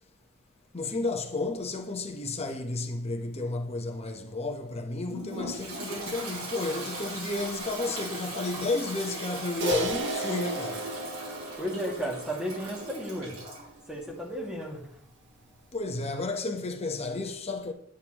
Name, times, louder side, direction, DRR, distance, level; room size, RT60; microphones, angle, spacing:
voice 1, 0.7-10.9 15.7-17.7, left 2 dB, 30° left, 1.0 m, -32 dB
Toilet flush, 5.1-13.7, right 1 dB, 70° right, 4.6 m, -39 dB
Crash cymbal, 9.6-14.2, right 1 dB, 55° right, 1.1 m, -34 dB
voice 2, 11.6-13.4 13.9-15.0, equal, 5° right, 2.2 m, -34 dB
9.7 x 9.2 x 3.0 m
head